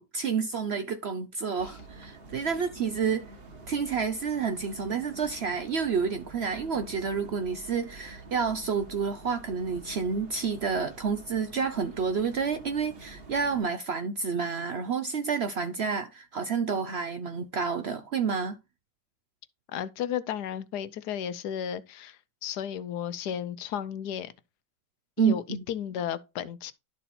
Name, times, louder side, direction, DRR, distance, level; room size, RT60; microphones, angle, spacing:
voice 1, 0.0-3.3 3.7-18.6 25.2-25.6, right 6 dB, 75° right, 0.6 m, -29 dB
sound 1, 1.6-13.7, right 3 dB, 35° right, 1.4 m, -48 dB
voice 2, 19.7-24.3 25.2-26.7, left 9 dB, 70° left, 1.2 m, -34 dB
12.0 x 4.1 x 4.2 m
omnidirectional pair, 1.9 m